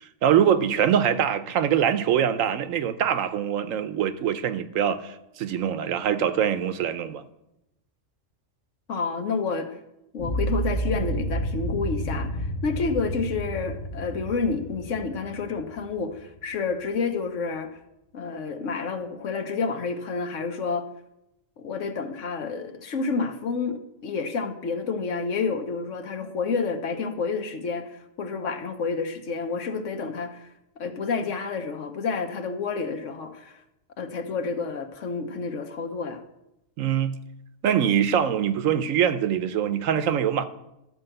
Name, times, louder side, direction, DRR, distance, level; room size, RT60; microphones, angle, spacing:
voice 1, 0.2-7.2 36.8-37.2 37.6-40.4, right 9 dB, 85° right, 1.1 m, -23 dB
voice 2, 8.9-9.7 10.1-17.7 18.1-20.8 21.6-30.5 30.8-33.6 34.0-36.2, left 4 dB, 75° left, 1.3 m, -29 dB
sound 1, 10.2-16.3, right 1 dB, 30° left, 0.9 m, -30 dB
12.0 x 4.7 x 7.8 m
omnidirectional pair, 1.3 m